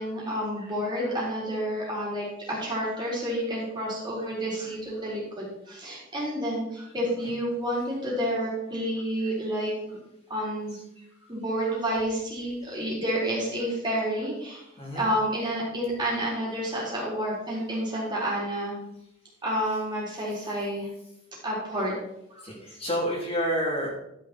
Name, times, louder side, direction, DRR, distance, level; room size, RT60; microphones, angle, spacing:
voice 1, 0.0-10.0 10.3-10.8 11.3-14.6 14.9-18.7 19.4-20.9 21.4-21.9 22.3-22.5, equal, 25° right, -5 dB, 4.0 m, -29 dB
voice 2, 7.0-7.4 10.7-10.8 12.6-12.7 14.8-15.1 20.2-20.4 22.4-23.9, equal, 30° left, -3 dB, 3.3 m, -30 dB
11.5 x 7.9 x 4.4 m, 0.81 s
head